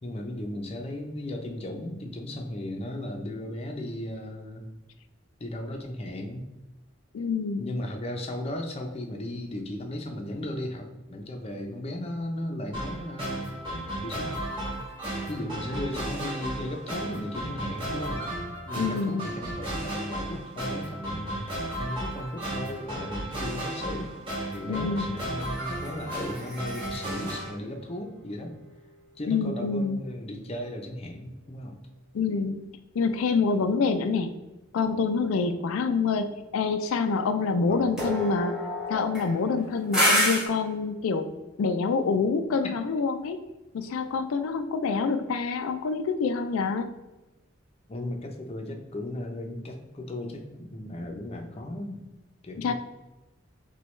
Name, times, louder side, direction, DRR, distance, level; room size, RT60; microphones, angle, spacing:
voice 1, 0.0-4.6 5.4-6.5 7.6-13.5 14.0-14.4 15.3-18.4 18.7-21.5 21.8-24.1 24.5-28.6 29.2-31.8 37.7-38.0 47.9-52.0 52.4-52.7, left 1 dB, 30° left, 3 dB, 0.5 m, -36 dB
voice 2, 7.1-7.7 18.8-19.3 24.7-25.2 29.3-30.1 32.1-32.7 33.0-34.3 34.7-38.6 38.9-41.3 41.6-43.4 43.7-46.9 52.6-52.7, left 4 dB, 90° left, 8 dB, 0.4 m, -26 dB
sound 1, 12.7-27.5, right 1 dB, 25° right, 1.4 m, -34 dB
sound 2, 25.4-28.9 38.0-40.5, equal, 5° right, 0.9 m, -30 dB
6.0 x 2.3 x 3.1 m, 1.1 s
head